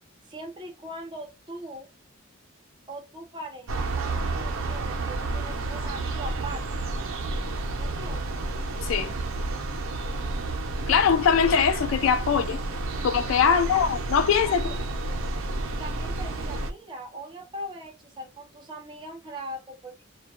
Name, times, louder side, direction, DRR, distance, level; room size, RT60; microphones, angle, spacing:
voice 1, 0.3-1.9 2.9-6.6 7.8-8.4 13.4-13.8 14.4-14.8 15.8-20.0, right 1 dB, 20° right, 0.6 m, -40 dB
sound 1, 3.7-16.7, right 2 dB, 75° right, 0.5 m, -30 dB
voice 2, 8.8-9.1 10.9-12.6 13.0-14.7, left 7 dB, 70° left, 0.4 m, -22 dB
sound 2, 11.4-11.9, left 3 dB, 45° left, 1.0 m, -38 dB
2.2 x 2.1 x 2.9 m
head